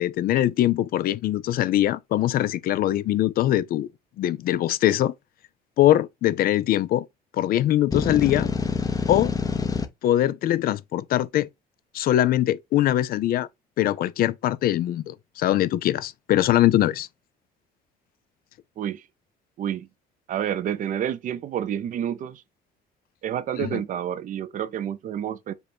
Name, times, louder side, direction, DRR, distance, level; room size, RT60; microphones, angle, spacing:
voice 1, 0.0-3.9 4.2-5.1 5.8-7.1 7.4-8.5 9.1-9.3 10.0-11.5 11.9-13.5 13.8-17.1 23.6-23.8, left 13 dB, 60° left, 0.4 m, -22 dB
sound 1, 7.9-9.9, left 4 dB, 20° left, 0.7 m, -26 dB
voice 2, 19.6-19.9 20.3-22.4 23.2-25.5, right 10 dB, 50° right, 0.5 m, -29 dB
5.3 x 2.2 x 4.4 m
cardioid pair, 110°, 17 cm